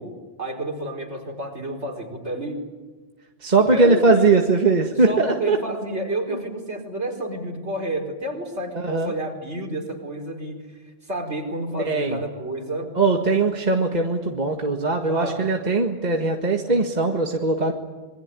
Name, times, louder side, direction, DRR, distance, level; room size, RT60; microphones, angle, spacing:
voice 1, 0.0-2.6 3.7-4.3 5.0-10.6 11.0-12.9 15.1-15.5, right 1 dB, 60° right, 2 dB, 4.9 m, -30 dB
voice 2, 3.4-5.6 8.7-9.1 11.9-12.2 13.0-17.7, right 3 dB, 35° right, 3 dB, 1.9 m, -20 dB
26.5 x 22.5 x 9.8 m, 1.3 s
omnidirectional pair, 1.3 m